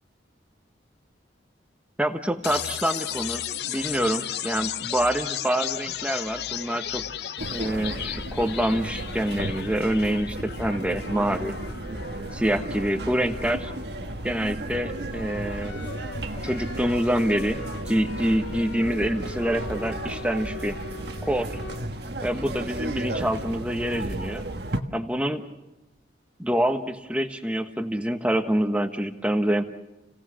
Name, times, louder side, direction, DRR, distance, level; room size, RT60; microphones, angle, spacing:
voice 1, 2.0-7.0 7.5-11.5 12.3-13.7 14.2-15.8 16.4-20.8 21.2-21.5 22.2-24.4 24.9-25.4 26.4-29.6, equal, 5° right, 6 dB, 1.2 m, -26 dB
sound 1, 2.4-16.4, left 9 dB, 65° left, 0.7 m, -35 dB
sound 2, 7.4-24.8, right 1 dB, 65° right, 1.4 m, -34 dB
sound 3, 14.9-22.3 22.9-23.0 23.5-23.7 24.2-24.3 24.5-24.6, left 3 dB, 80° left, 1.0 m, -41 dB
30.0 x 17.5 x 6.3 m, 1.0 s
head